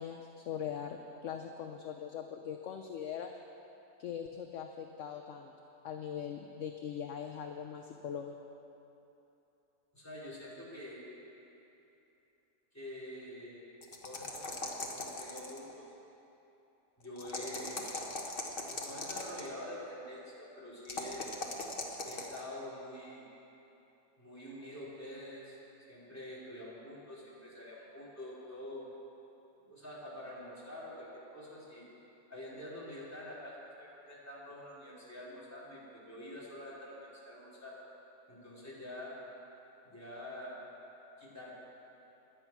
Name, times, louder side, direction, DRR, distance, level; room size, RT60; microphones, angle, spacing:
voice 1, 0.0-3.3 4.0-5.5 5.8-8.3, left 8 dB, 60° left, 4 dB, 0.9 m, -41 dB
voice 2, 9.9-11.1 12.7-13.7 14.0-15.8 17.0-17.9 18.7-21.3 22.0-23.3 24.2-25.6 25.9-28.9 29.6-31.8 32.3-37.8 38.3-39.2 39.8-40.6 41.2-41.6, left 1 dB, 10° left, -8 dB, 3.7 m, -46 dB
sound 1, 13.8-15.7 17.2-19.5 20.9-22.4, left 2 dB, 35° left, 1.4 m, -39 dB
17.0 x 11.0 x 6.0 m, 3.0 s
omnidirectional pair, 1.8 m